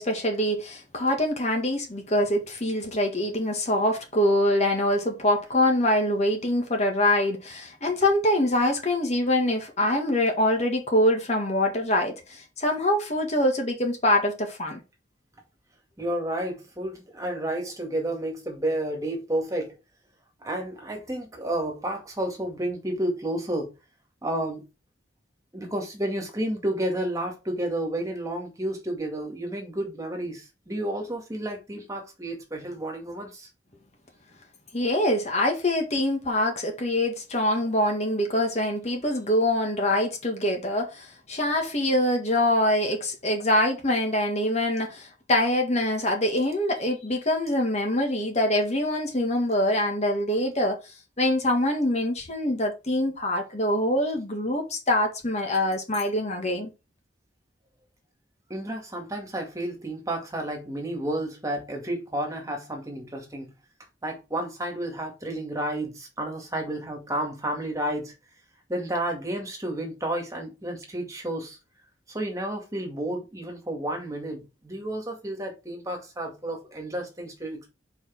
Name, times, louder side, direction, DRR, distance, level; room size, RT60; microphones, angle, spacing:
voice 1, 0.0-14.8 34.7-50.8 51.2-56.7, left 1 dB, 40° left, 1.8 m, -24 dB
voice 2, 16.0-19.8 20.4-23.7 24.2-24.6 25.5-33.5 58.5-63.5 64.0-68.1 68.7-71.6 72.1-77.7, right 1 dB, 20° right, 2.1 m, -31 dB
6.4 x 4.7 x 4.6 m
head